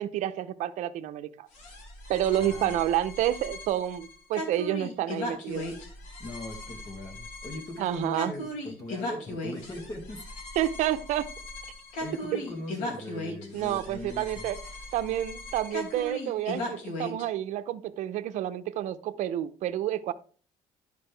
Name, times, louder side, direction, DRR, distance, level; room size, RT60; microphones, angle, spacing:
voice 1, 0.0-1.5 2.1-5.7 7.8-8.3 10.6-11.3 13.5-14.6 14.9-20.1, right 12 dB, 70° right, 12 dB, 0.7 m, -29 dB
sound 1, 1.5-17.2, left 1 dB, 80° left, 2.5 m, -38 dB
voice 2, 2.4-2.8 6.2-10.3 12.0-14.5, left 1 dB, 30° left, 2 dB, 1.4 m, -40 dB
11.0 x 5.2 x 3.3 m, 0.43 s
cardioid pair, 135°, 13 cm